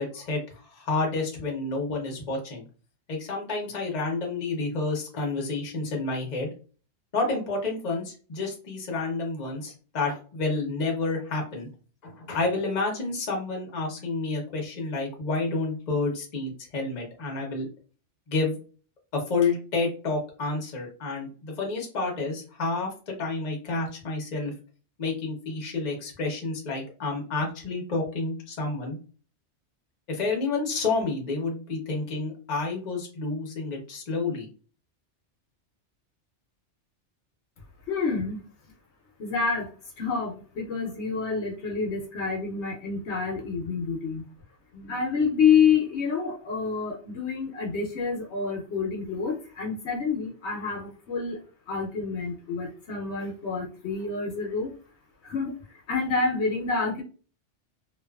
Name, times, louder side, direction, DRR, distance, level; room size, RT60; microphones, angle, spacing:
voice 1, 0.0-2.6 3.1-6.5 7.1-11.7 12.0-17.7 18.3-18.6 19.1-24.5 25.0-29.0 30.1-34.5, left 3 dB, 40° left, 0 dB, 0.8 m, -29 dB
voice 2, 37.9-38.4 39.2-39.7 40.0-44.2 44.7-51.4 51.7-54.7 55.2-57.0, left 5 dB, 70° left, 0 dB, 0.9 m, -28 dB
2.5 x 2.3 x 2.3 m, 0.38 s
omnidirectional pair, 1.2 m